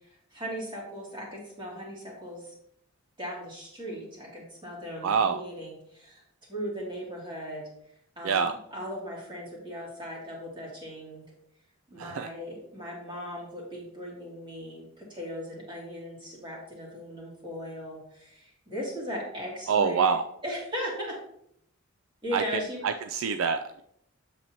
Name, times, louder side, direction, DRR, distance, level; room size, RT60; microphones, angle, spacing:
voice 1, 0.0-2.6 3.2-6.2 6.5-7.7 8.2-11.2 11.9-20.1 20.4-21.2 22.2-22.8 23.2-23.3, equal, 20° right, -3 dB, 2.7 m, -38 dB
voice 2, 5.0-5.4 8.2-8.5 12.0-12.3 19.7-20.2 22.3-22.4 22.8-23.8, right 6 dB, 65° right, 8 dB, 0.4 m, -26 dB
7.8 x 6.8 x 2.9 m, 0.72 s
head